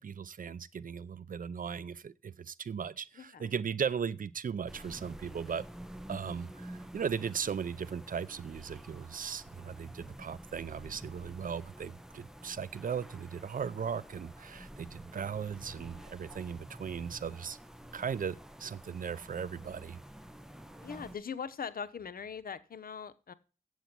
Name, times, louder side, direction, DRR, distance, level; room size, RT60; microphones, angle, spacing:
voice 1, 0.0-5.6 6.1-17.6 17.9-20.0, right 7 dB, 60° right, 0.6 m, -37 dB
voice 2, 3.2-3.5 20.8-23.3, left 6 dB, 70° left, 0.8 m, -41 dB
sound 1, 4.7-21.2, equal, 5° right, 1.1 m, -49 dB
8.2 x 8.0 x 6.0 m
cardioid pair, 55°, 16 cm